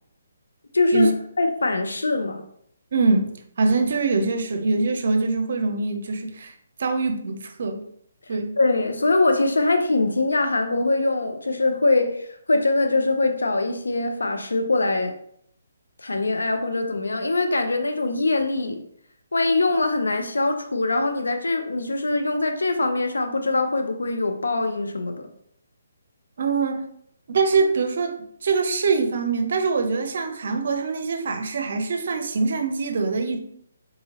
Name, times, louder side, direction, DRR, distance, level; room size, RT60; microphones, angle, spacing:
voice 1, 0.7-1.1 1.4-2.4 8.6-15.1 16.0-18.8 19.3-25.3, left 2 dB, 90° left, 6 dB, 0.6 m, -23 dB
voice 2, 2.9-6.5 6.8-7.8 8.3-8.6 26.4-26.8 27.3-33.4, right 4 dB, 60° right, 6 dB, 0.6 m, -23 dB
3.8 x 2.8 x 2.9 m, 0.69 s
hypercardioid pair, 150°, 0 cm